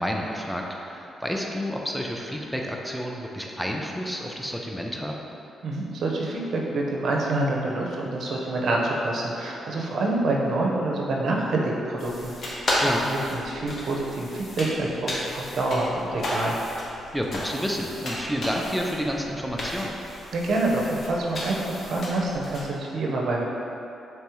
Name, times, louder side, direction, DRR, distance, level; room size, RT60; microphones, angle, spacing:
voice 1, 0.0-5.2 12.8-13.1 17.1-19.9, equal, ahead, -1 dB, 0.4 m, -30 dB
voice 2, 5.6-12.7 13.1-16.6 20.3-23.4, right 2 dB, 65° right, -2 dB, 0.5 m, -27 dB
sound 1, 12.0-22.6, left 1 dB, 55° left, 0.8 m, -33 dB
3.4 x 3.1 x 3.0 m, 2.8 s
cardioid pair, 70°, 0 cm